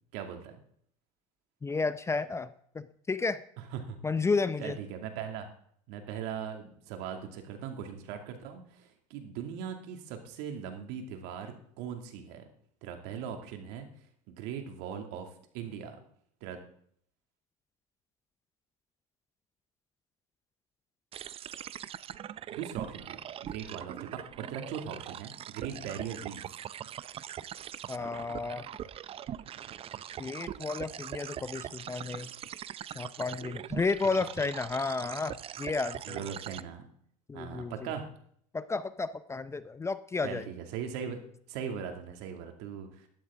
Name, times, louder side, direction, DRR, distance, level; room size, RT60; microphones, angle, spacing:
voice 1, 0.1-0.6 3.7-4.0 4.6-5.5 5.9-12.4 12.8-13.9 14.3-15.3 15.5-16.0 16.4-16.6 22.5-24.1 24.4-26.6 36.1-36.9 37.3-38.0 40.2-41.2 41.5-43.1, right 8 dB, 65° right, 5 dB, 2.4 m, -39 dB
voice 2, 1.6-3.4 4.0-4.8 27.9-28.7 30.2-32.3 32.9-36.3 37.3-37.9 38.5-40.5, left 4 dB, 15° left, 13 dB, 0.5 m, -32 dB
sound 1, 21.1-36.6, right 10 dB, 35° right, 0.5 m, -42 dB
12.5 x 12.0 x 3.7 m, 0.63 s
supercardioid pair, 105°, 18 cm